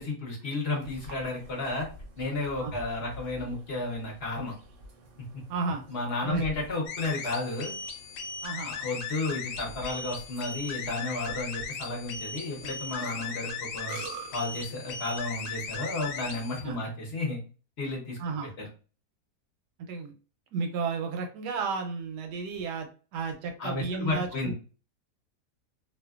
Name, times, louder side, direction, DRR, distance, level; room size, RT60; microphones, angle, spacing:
voice 1, 0.0-1.9 2.2-4.5 5.3-5.4 5.9-7.7 8.6-14.0 14.3-17.4 17.8-18.2 18.6-18.7 23.6-24.5, left 2 dB, 50° left, -1 dB, 0.9 m, -32 dB
Burping eructation, 0.8-16.8, right 2 dB, 60° right, 0.8 m, -48 dB
voice 2, 5.5-5.8 6.2-6.4 8.4-8.7 16.6-16.8 18.2-18.5 19.9-20.1 20.5-24.5, right 4 dB, 85° right, 4 dB, 1.2 m, -32 dB
sound 1, 6.9-16.6, left 5 dB, 80° left, 1.2 m, -38 dB
2.7 x 2.3 x 2.3 m, 0.36 s
omnidirectional pair, 1.8 m